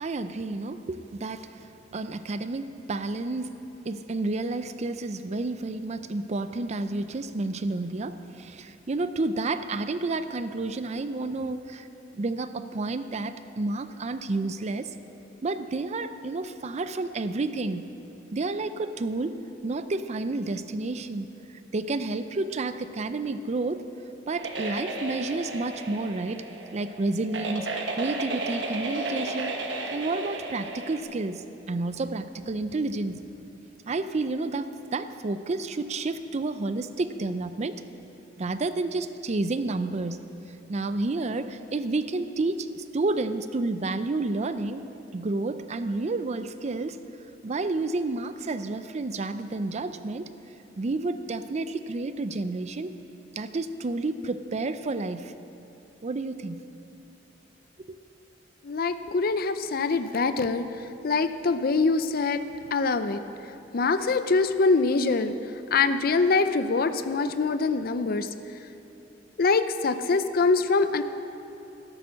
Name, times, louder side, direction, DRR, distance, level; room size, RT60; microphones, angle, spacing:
voice 1, 0.0-3.5 3.8-11.9 12.1-15.0 15.4-17.8 18.3-21.3 21.7-23.8 24.3-26.4 26.7-27.7 27.9-29.6 29.9-33.2 33.9-37.8 38.4-40.2 40.7-44.8 45.1-47.0 47.4-50.3 50.8-52.9 53.4-55.3 56.0-56.6 57.9-58.0, right 2 dB, 35° right, 11 dB, 0.5 m, -30 dB
sound 1, 24.3-31.0, right 2 dB, 70° right, 1.2 m, -33 dB
voice 2, 58.6-62.4 62.7-63.2 63.7-65.3 65.7-68.3 69.4-71.0, left 4 dB, 55° left, 11 dB, 0.5 m, -24 dB
12.5 x 10.5 x 6.3 m, 2.8 s
head